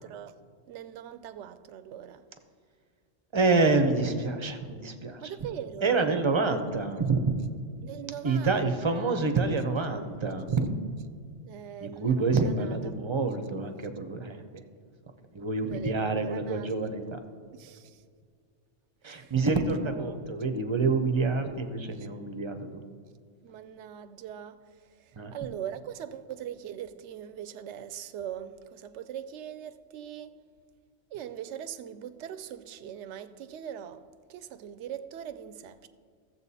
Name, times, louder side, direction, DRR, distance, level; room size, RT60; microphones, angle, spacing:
voice 1, 0.0-2.3 5.2-6.1 7.8-9.2 11.5-12.9 15.6-16.7 17.5-18.0 19.0-19.3 19.6-20.2 21.9-22.1 23.4-30.4 31.1-35.9, right 10 dB, 75° right, 0.9 m, -41 dB
voice 2, 3.3-5.4 5.8-7.4 8.2-10.8 11.8-14.6 15.3-17.2 19.0-22.8 25.1-25.3, right 3 dB, 30° right, 0.6 m, -27 dB
14.5 x 7.5 x 4.1 m
omnidirectional pair, 1.2 m